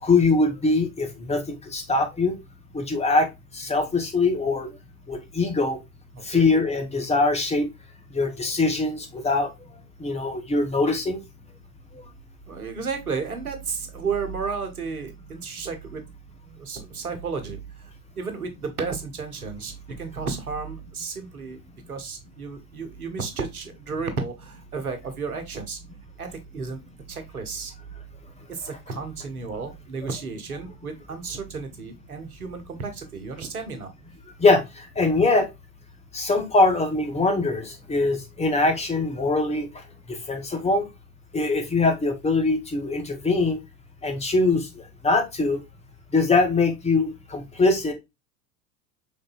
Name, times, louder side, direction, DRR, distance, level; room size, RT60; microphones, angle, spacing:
voice 1, 0.0-2.4 2.7-3.3 3.5-4.7 5.1-5.8 6.2-7.7 8.1-9.5 10.0-11.2 34.4-35.5 36.1-39.8 40.1-40.9 41.3-43.6 44.0-45.6 46.1-47.9, left 3 dB, 15° left, 5 dB, 1.1 m, -22 dB
voice 2, 6.1-6.5 12.5-16.0 16.6-17.6 18.2-19.7 20.0-21.6 21.9-25.8 26.2-26.3 26.5-26.8 27.1-27.7 28.6-33.9, right 5 dB, 85° right, 7 dB, 1.1 m, -32 dB
5.2 x 3.9 x 2.2 m, 0.21 s
figure-of-eight pair, 85°, 43 cm